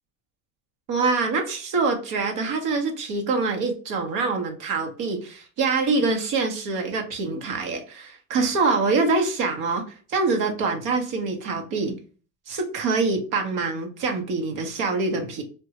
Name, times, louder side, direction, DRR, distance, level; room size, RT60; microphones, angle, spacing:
voice 1, 0.9-12.0 12.5-15.4, right 4 dB, 55° right, 3 dB, 1.0 m, -25 dB
3.4 x 2.3 x 2.8 m, 0.38 s
cardioid pair, 160°, 39 cm